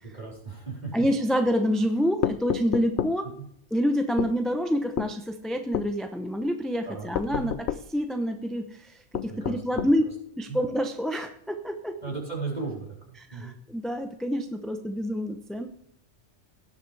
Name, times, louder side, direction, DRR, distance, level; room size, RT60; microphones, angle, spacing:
voice 1, 0.0-1.0 3.4-3.5 6.9-7.5 9.3-9.6 9.8-10.1 10.5-10.6 12.0-13.5, right 4 dB, 35° right, -3 dB, 4.1 m, -36 dB
voice 2, 0.9-3.3 3.7-7.6 7.9-10.0 10.4-12.0 13.2-15.7, equal, ahead, 5 dB, 0.6 m, -27 dB
sound 1, 2.2-3.2 4.2-4.4 5.0-5.1 5.7-5.9 7.1-7.9 9.1-10.0, left 10 dB, 70° left, 0.9 m, -29 dB
17.5 x 6.9 x 3.4 m, 0.72 s
omnidirectional pair, 1.2 m